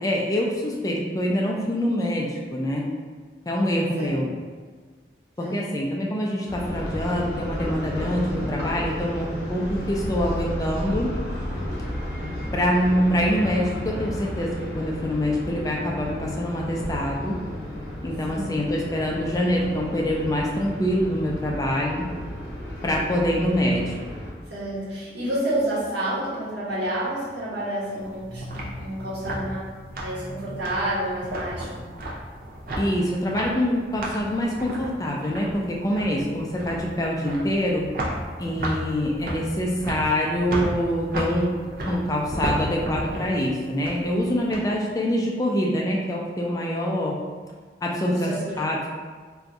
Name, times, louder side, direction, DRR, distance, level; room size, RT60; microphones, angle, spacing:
voice 1, 0.0-2.9 3.5-4.3 5.4-11.1 12.5-17.4 18.0-22.1 22.8-23.9 32.8-37.9 38.4-41.6 41.8-47.2 47.8-48.9, equal, 20° left, -2 dB, 0.3 m, -25 dB
sound 1, 6.5-24.3, left 1 dB, 65° left, 0.8 m, -33 dB
voice 2, 24.5-29.7 30.0-31.8 35.9-36.0 48.1-48.6, right 1 dB, 85° right, -9 dB, 1.3 m, -29 dB
sound 2, 28.0-44.6, right 1 dB, 50° right, 0.5 m, -34 dB
2.5 x 2.3 x 4.0 m, 1.5 s
head